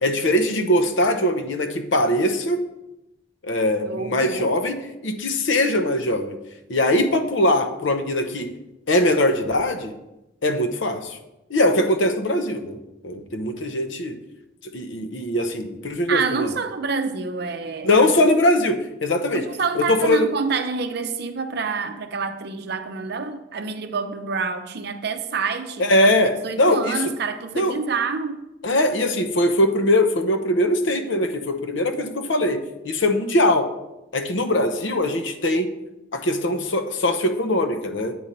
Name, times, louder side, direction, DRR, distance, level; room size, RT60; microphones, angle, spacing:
voice 1, 0.0-2.6 3.4-4.7 5.0-6.4 6.7-8.5 8.9-9.9 10.4-11.2 11.5-12.8 13.0-14.2 14.7-16.5 17.8-19.5 19.7-20.3 25.8-27.0 27.6-27.7 28.6-32.6 32.8-33.7 34.1-35.7 36.1-38.2, left 1 dB, 65° left, 7 dB, 0.7 m, -21 dB
voice 2, 3.9-4.5 16.1-18.1 19.3-26.1 26.4-28.4, right 5 dB, 55° right, 8 dB, 0.6 m, -27 dB
8.6 x 4.3 x 5.2 m, 0.92 s
head